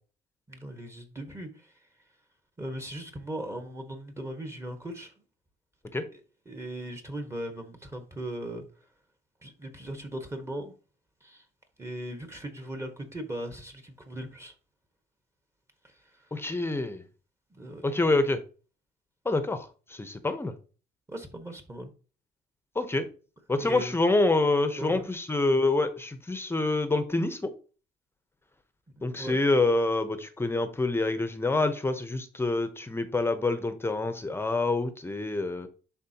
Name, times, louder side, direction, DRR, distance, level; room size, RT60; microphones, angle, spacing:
voice 1, 0.5-1.7 2.6-5.1 6.1-6.2 6.4-8.6 9.4-10.7 11.2-11.4 11.8-14.5 15.8-16.3 17.5-17.8 21.1-21.9 23.6-23.9 24.8-25.1 29.1-29.4, right 1 dB, 15° right, 1.5 m, -38 dB
voice 2, 16.3-17.0 17.8-18.4 19.2-20.5 22.7-23.1 23.5-27.5 29.0-35.7, left 2 dB, 15° left, 0.9 m, -27 dB
11.0 x 4.3 x 2.9 m
cardioid pair, 110°, 17 cm